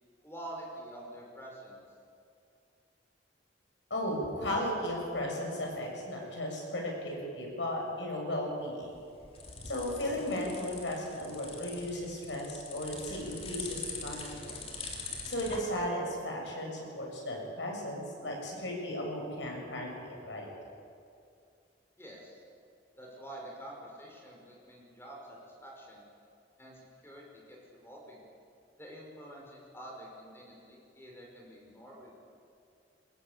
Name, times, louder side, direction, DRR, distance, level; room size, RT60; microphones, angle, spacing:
voice 1, 0.2-1.8 22.0-22.4 23.0-26.0 26.6-28.2 28.8-32.1, right 1 dB, 15° left, -1 dB, 5.6 m, -47 dB
voice 2, 3.9-8.9 9.7-14.6 15.3-20.5, left 1 dB, 85° left, 0 dB, 7.3 m, -35 dB
sound 1, 8.8-15.6, left 4 dB, 35° left, 3.6 m, -43 dB
23.0 x 20.5 x 9.0 m, 2.4 s
head